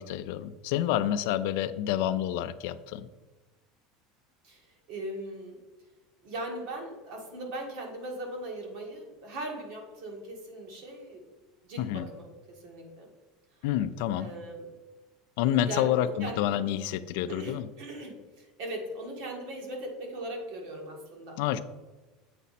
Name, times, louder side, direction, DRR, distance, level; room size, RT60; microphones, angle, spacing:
voice 1, 0.0-3.1 11.8-12.1 13.6-14.3 15.4-17.7 21.4-21.6, left 11 dB, 60° left, 12 dB, 0.4 m, -28 dB
voice 2, 4.4-5.6 6.2-11.2 11.6-13.1 14.2-14.7 15.6-16.7 17.3-21.4, right 1 dB, 55° right, 2 dB, 1.7 m, -39 dB
8.1 x 4.2 x 4.1 m, 1.2 s
cardioid pair, 175°, 0 cm